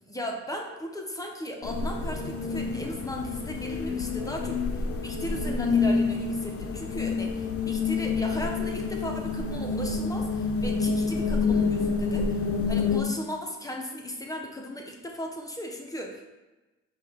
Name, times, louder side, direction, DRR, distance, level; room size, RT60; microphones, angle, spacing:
voice 1, 0.1-16.2, equal, 10° left, 1 dB, 0.7 m, -36 dB
sound 1, 1.6-13.0, left 4 dB, 50° left, 0.5 m, -28 dB
5.2 x 2.3 x 3.3 m, 1.1 s
cardioid pair, 90°, 30 cm